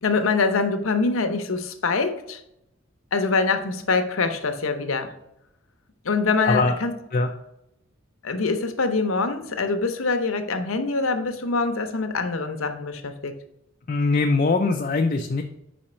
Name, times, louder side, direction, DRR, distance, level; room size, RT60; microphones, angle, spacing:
voice 1, 0.0-2.4 3.1-5.1 6.0-6.9 8.2-13.3, left 4 dB, 85° left, 7 dB, 0.8 m, -24 dB
voice 2, 6.4-6.8 7.1-7.3 13.9-15.4, left 3 dB, 40° left, 3 dB, 0.4 m, -21 dB
5.1 x 4.3 x 5.0 m, 0.83 s
head